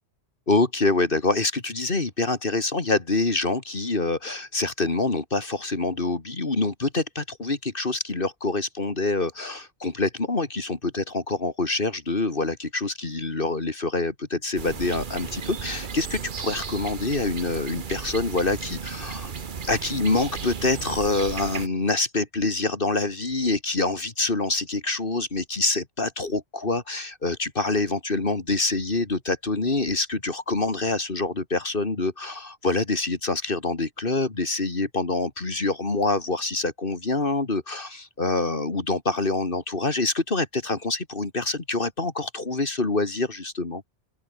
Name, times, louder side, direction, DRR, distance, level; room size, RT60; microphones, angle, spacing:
voice 1, 0.5-19.3 19.6-43.8, left 3 dB, 55° left, 2.5 m, -26 dB
sound 1, 14.6-21.7, right 6 dB, 50° right, 1.2 m, -35 dB
open air
omnidirectional pair, 1.1 m